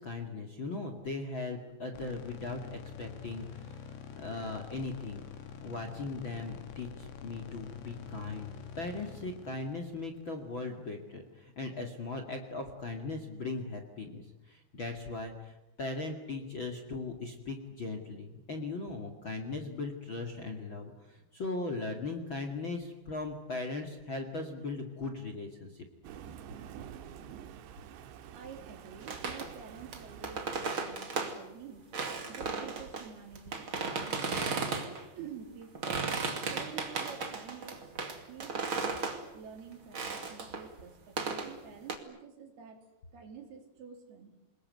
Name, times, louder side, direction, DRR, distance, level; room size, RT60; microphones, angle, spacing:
voice 1, 0.0-5.3 5.6-8.5 8.8-25.9, left 3 dB, 35° left, 5 dB, 2.2 m, -39 dB
sound 1, 1.9-11.1, left 6 dB, 80° left, 4.4 m, -47 dB
Thunder, 26.0-30.7, right 9 dB, 85° right, 3.6 m, -48 dB
voice 2, 28.3-31.9 32.3-34.8 35.1-36.1 36.5-37.9 38.3-38.9 39.2-42.9 43.1-44.4, right 7 dB, 65° right, 5 dB, 4.9 m, -49 dB
sound 2, 29.0-31.4 31.9-35.0 35.6-39.2 39.9-40.8 41.2-42.0, right 4 dB, 35° right, 2.5 m, -35 dB
28.5 x 21.0 x 9.4 m, 0.91 s
omnidirectional pair, 4.9 m